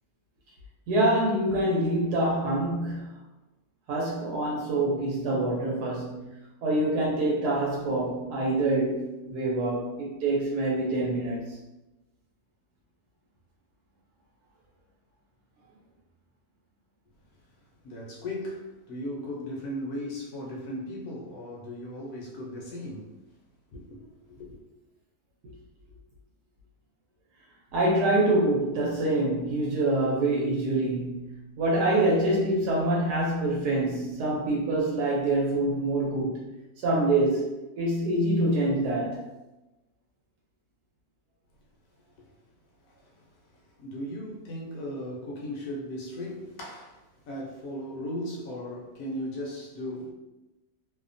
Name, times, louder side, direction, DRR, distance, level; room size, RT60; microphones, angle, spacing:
voice 1, 0.9-3.1 3.9-6.3 6.6-11.6 25.4-25.5 27.7-36.4 36.8-39.3, right 1 dB, 85° right, 1.1 m, -26 dB
voice 2, 17.8-23.1 23.7-24.6 42.2-42.3 42.9-50.1, left 1 dB, 70° left, 0.9 m, -37 dB
2.7 x 2.1 x 2.5 m
omnidirectional pair, 1.7 m